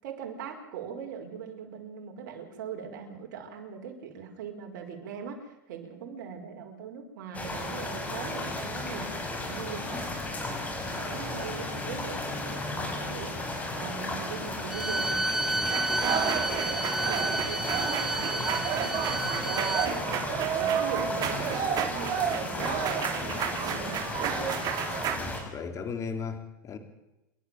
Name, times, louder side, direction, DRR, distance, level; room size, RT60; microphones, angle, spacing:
voice 1, 0.0-10.0 10.8-13.4 13.8-24.6, right 6 dB, 70° right, 5.3 m, -41 dB
sound 1, 7.3-25.4, left 2 dB, 15° left, 6.3 m, -35 dB
Bowed string instrument, 14.7-19.9, right 2 dB, 5° right, 1.2 m, -31 dB
sound 2, 15.7-25.2, right 8 dB, 40° right, 3.0 m, -31 dB
voice 2, 25.1-26.8, left 5 dB, 30° left, 3.2 m, -36 dB
27.5 x 13.0 x 7.8 m
supercardioid pair, 120°, 11 cm